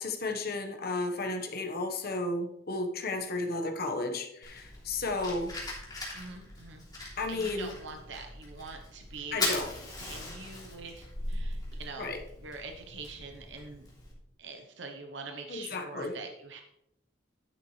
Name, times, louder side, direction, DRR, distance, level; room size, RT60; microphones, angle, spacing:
voice 1, 0.0-5.5 7.2-7.7 9.3-9.7 12.0-12.2 15.5-16.1, left 2 dB, 55° left, 4 dB, 1.3 m, -33 dB
Fire, 4.4-14.1, left 2 dB, 20° left, 3.1 m, -39 dB
voice 2, 6.1-9.5 10.0-13.9 14.4-16.6, right 4 dB, 70° right, 4 dB, 0.9 m, -44 dB
10.0 x 8.7 x 3.2 m, 0.81 s
head